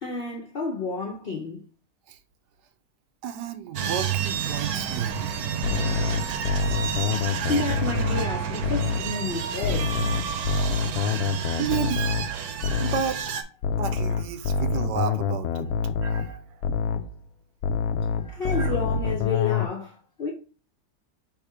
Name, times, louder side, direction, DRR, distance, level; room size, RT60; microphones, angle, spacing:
voice 1, 0.0-1.6 7.5-10.0 18.2-20.3, left 4 dB, 45° left, 0.8 m, -30 dB
voice 2, 3.2-5.3 11.6-12.2 12.8-13.2 13.8-15.7 16.0-16.6 18.5-18.8, right 7 dB, 90° right, 1.2 m, -32 dB
sound 1, 3.8-13.4, right 8 dB, 70° right, 1.1 m, -30 dB
sound 2, 5.6-9.1 9.6-13.2 13.6-17.1 17.6-19.7, left 5 dB, 70° left, 1.0 m, -26 dB
3.5 x 3.1 x 4.8 m
omnidirectional pair, 1.7 m